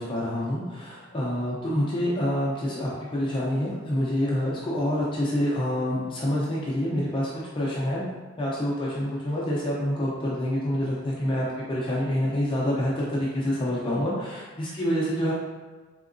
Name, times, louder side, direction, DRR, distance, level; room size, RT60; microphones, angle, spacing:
voice 1, 0.0-8.1 8.4-15.3, equal, 25° left, -6 dB, 0.5 m, -27 dB
3.6 x 2.8 x 2.5 m, 1.4 s
head